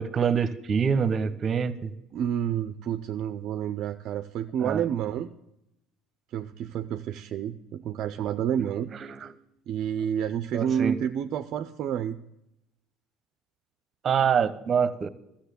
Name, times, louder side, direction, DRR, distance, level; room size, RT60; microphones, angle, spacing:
voice 1, 0.0-1.9 4.6-4.8 9.2-9.3 10.5-11.0 14.0-15.1, right 7 dB, 40° right, 15 dB, 0.9 m, -25 dB
voice 2, 2.1-5.3 6.3-8.9 9.7-12.2, right 9 dB, 60° right, 9 dB, 0.5 m, -29 dB
13.0 x 7.3 x 9.2 m, 0.85 s
hypercardioid pair, 75°, 0 cm